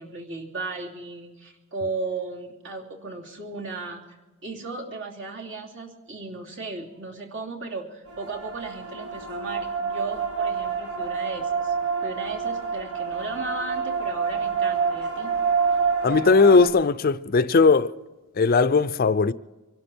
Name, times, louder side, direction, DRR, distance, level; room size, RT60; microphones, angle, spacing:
voice 1, 0.0-4.0 4.4-11.7 12.0-15.3, right 3 dB, 60° right, 2.9 m, -35 dB
sound 1, 8.1-16.7, right 5 dB, 80° right, 4.3 m, -27 dB
voice 2, 16.0-17.9 18.4-19.3, left 4 dB, 40° left, 0.5 m, -18 dB
24.5 x 12.0 x 4.4 m
head